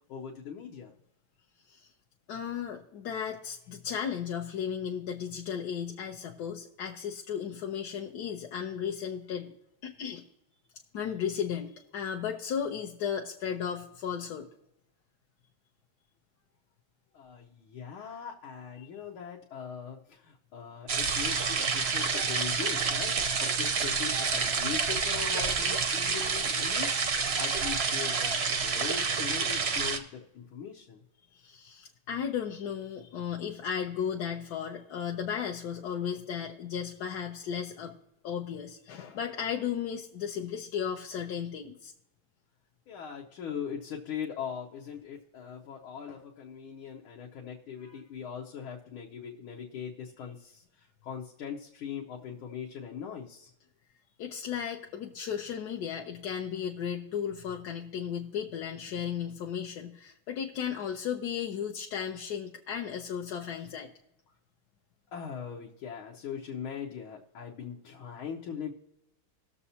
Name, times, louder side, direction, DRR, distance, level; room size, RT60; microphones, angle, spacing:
voice 1, 0.1-1.0 17.1-27.0 27.4-31.0 42.9-53.5 65.1-68.7, left 7 dB, 85° left, -1 dB, 1.7 m, -40 dB
voice 2, 2.3-9.5 9.8-10.2 10.9-14.5 31.3-38.0 38.2-41.9 47.8-48.0 54.2-63.9, left 8 dB, 65° left, 1 dB, 1.1 m, -35 dB
sound 1, 20.9-30.0, right 5 dB, 60° right, 0.6 m, -28 dB
19.0 x 6.9 x 2.8 m, 0.83 s
omnidirectional pair, 2.2 m